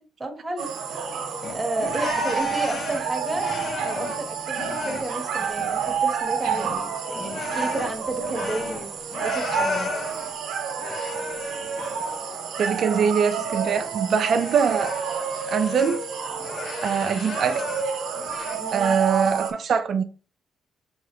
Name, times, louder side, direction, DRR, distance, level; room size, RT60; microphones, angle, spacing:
voice 1, 0.2-1.2 1.5-3.5 3.8-8.9 9.2-9.9 18.5-19.0, right 2 dB, 20° right, 1.3 m, -32 dB
sound 1, 0.6-19.5, right 6 dB, 80° right, 1.0 m, -29 dB
sound 2, 1.4-4.3 4.6-6.0 6.3-10.3 10.8-12.2 12.6-16.0 16.4-17.9 18.2-18.6, left 4 dB, 55° left, 0.9 m, -35 dB
voice 2, 12.6-14.9 15.5-16.0 16.8-17.6 18.7-20.0, right 6 dB, 60° right, 0.5 m, -23 dB
6.3 x 2.8 x 3.0 m
cardioid pair, 90°, 0 cm